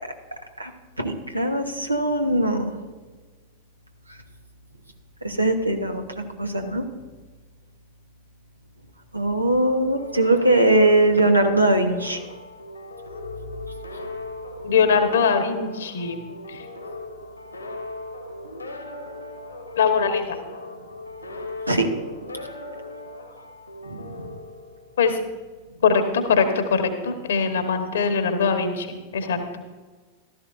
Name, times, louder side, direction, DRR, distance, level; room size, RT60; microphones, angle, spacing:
voice 1, 1.0-2.7 5.2-6.8 9.1-12.2 21.7-21.9 23.9-24.3, right 1 dB, 85° right, 5 dB, 1.1 m, -21 dB
sound 1, 9.8-25.2, left 2 dB, 80° left, 1.8 m, -38 dB
voice 2, 14.6-16.2 16.5-16.6 19.8-20.2 25.0-25.2 25.8-29.4, left 5 dB, 65° left, 7 dB, 1.3 m, -21 dB
15.0 x 13.0 x 2.6 m, 1.3 s
figure-of-eight pair, 90°, 0 cm